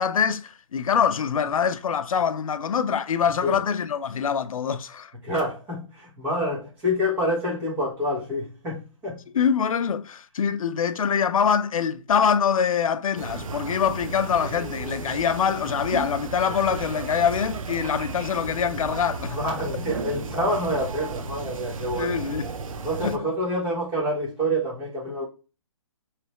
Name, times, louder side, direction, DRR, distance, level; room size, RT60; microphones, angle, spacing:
voice 1, 0.0-5.1 9.3-19.4 21.9-22.5 23.0-23.2, left 7 dB, 85° left, 0.5 m, -24 dB
voice 2, 5.2-9.2 19.2-22.2 22.8-25.2, equal, 10° right, 1.2 m, -27 dB
sound 1, 13.2-23.2, right 4 dB, 75° right, 0.7 m, -34 dB
3.8 x 3.2 x 3.0 m
hypercardioid pair, 175°, 17 cm